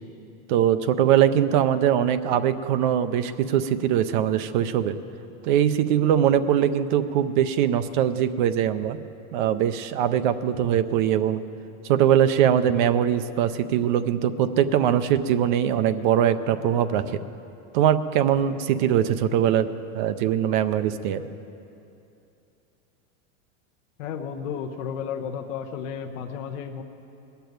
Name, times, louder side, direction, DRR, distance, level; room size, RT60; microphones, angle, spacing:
voice 1, 0.5-5.0 5.4-9.0 9.3-11.4 11.8-17.2 17.7-19.7 19.9-21.2, right 10 dB, 40° right, 12 dB, 0.4 m, -22 dB
voice 2, 24.0-26.8, left 7 dB, 65° left, 3 dB, 0.9 m, -33 dB
19.5 x 6.8 x 9.3 m, 2.8 s
supercardioid pair, 165°, 42 cm